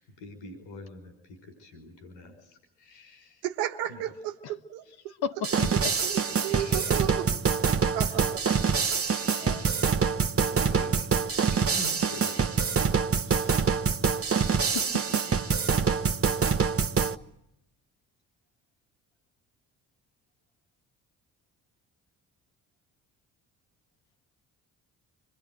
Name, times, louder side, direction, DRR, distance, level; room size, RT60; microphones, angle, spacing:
voice 1, 0.0-3.5 3.8-4.0 6.5-7.2 8.9-9.9 10.4-11.2 11.5-13.8, left 1 dB, 80° left, 5.6 m, -47 dB
voice 2, 3.4-4.9 6.0-7.3 7.9-8.7, right 12 dB, 85° right, 1.5 m, -33 dB
voice 3, 5.2-5.9 9.4-9.6 14.5-15.2, left 7 dB, 60° left, 1.7 m, -35 dB
sound 1, 5.4-17.1, right 6 dB, 30° right, 1.2 m, -25 dB
25.5 x 21.0 x 9.3 m
hypercardioid pair, 45°, 43 cm